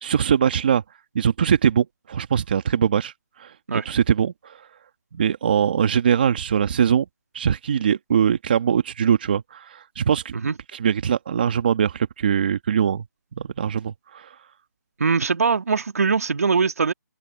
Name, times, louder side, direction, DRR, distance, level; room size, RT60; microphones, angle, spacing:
voice 1, 0.0-0.8 1.1-3.1 3.4-3.5 3.8-4.6 5.1-7.0 7.3-10.3 10.7-13.0 13.4-14.3, right 8 dB, 30° right, 1.3 m, -22 dB
voice 2, 15.0-16.9, right 5 dB, 55° right, 1.8 m, -21 dB
open air
hypercardioid pair, 170°, 10 cm